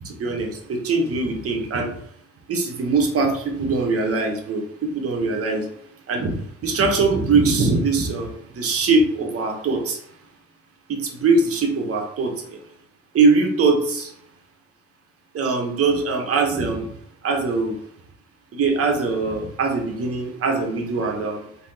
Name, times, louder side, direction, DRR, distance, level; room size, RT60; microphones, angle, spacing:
voice 1, 0.0-1.9 2.5-5.7 6.1-10.0 10.9-12.6 13.1-14.1 15.3-16.9 17.2-17.8 18.5-21.4, right 3 dB, 50° right, 3 dB, 0.9 m, -22 dB
3.3 x 2.7 x 2.7 m, 0.71 s
cardioid pair, 90°, 30 cm